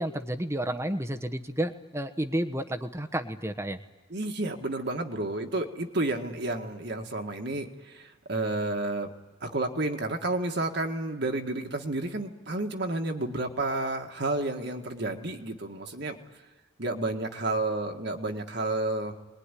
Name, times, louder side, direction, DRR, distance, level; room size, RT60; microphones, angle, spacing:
voice 1, 0.0-3.8, right 1 dB, 15° right, 7 dB, 1.1 m, -31 dB
voice 2, 4.1-9.1 9.4-16.2 16.8-19.1, right 2 dB, 55° right, 4 dB, 1.8 m, -31 dB
26.5 x 21.0 x 10.0 m, 1.2 s
head